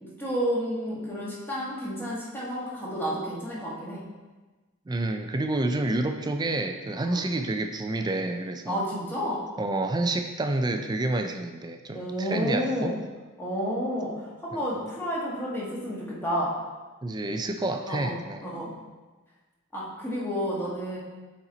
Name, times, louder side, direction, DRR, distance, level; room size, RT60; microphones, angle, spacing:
voice 1, 0.0-4.0 7.0-7.2 8.7-9.4 11.9-13.0 13.4-14.1 14.4-16.5 17.9-18.1 18.4-18.7 19.7-21.0, equal, 10° left, -6 dB, 1.4 m, -30 dB
voice 2, 4.9-8.8 9.6-12.9 14.5-14.7 17.0-18.5, right 2 dB, 20° right, 6 dB, 0.4 m, -29 dB
7.0 x 4.3 x 3.9 m, 1.2 s
head